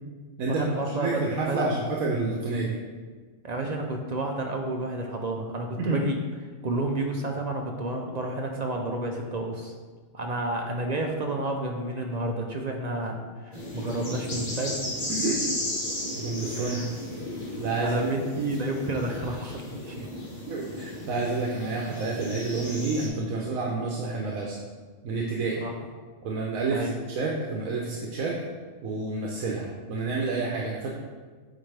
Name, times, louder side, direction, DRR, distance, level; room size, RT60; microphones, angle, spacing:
voice 1, 0.5-1.7 3.4-6.2 6.6-9.7 10.1-14.8 16.5-16.9 17.8-20.1 23.6-23.7 25.6-25.7 26.7-27.0, right 2 dB, 55° right, 2 dB, 0.4 m, -30 dB
voice 2, 1.0-2.8 5.8-6.0 15.1-15.4 16.1-16.9 17.6-18.1 20.5-24.6 25.0-25.6 26.2-28.3 28.8-30.9, right 3 dB, 80° right, -3 dB, 1.2 m, -29 dB
sound 1, 13.5-23.1, left 1 dB, 35° left, 1.6 m, -35 dB
8.9 x 4.2 x 3.4 m, 1.4 s
omnidirectional pair, 1.4 m